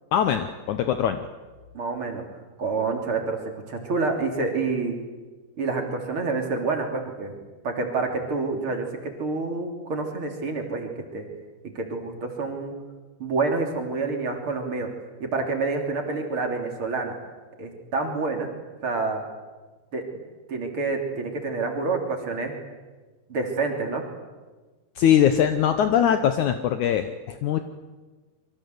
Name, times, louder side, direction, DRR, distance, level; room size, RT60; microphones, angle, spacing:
voice 1, 0.1-1.2 25.0-27.6, left 9 dB, 80° left, 8 dB, 1.7 m, -21 dB
voice 2, 1.7-2.2 2.6-3.4 3.7-5.0 5.6-7.4 7.6-11.3 11.6-12.7 13.2-14.9 15.2-17.2 17.6-18.5 18.8-19.2 19.9-20.2 20.5-22.5 23.3-24.0, right 3 dB, 35° right, 2 dB, 3.5 m, -28 dB
28.0 x 23.5 x 8.0 m, 1.3 s
omnidirectional pair, 4.8 m